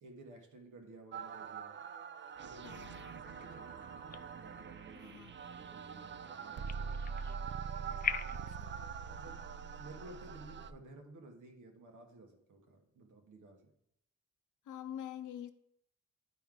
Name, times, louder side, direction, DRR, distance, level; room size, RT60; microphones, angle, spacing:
voice 1, 0.0-1.8 2.4-3.0 3.4-3.8 4.3-7.2 9.1-9.4 9.8-13.7, right 2 dB, 80° right, 1.3 m, -55 dB
sound 1, 1.1-10.7, right 6 dB, 40° right, 0.4 m, -44 dB
voice 2, 2.6-3.2 5.0-5.3 8.3-8.9 14.6-15.5, left 10 dB, 80° left, 0.6 m, -47 dB
sound 2, 3.2-8.5, left 7 dB, 30° left, 0.4 m, -44 dB
9.9 x 4.7 x 3.7 m
cardioid pair, 70°, 30 cm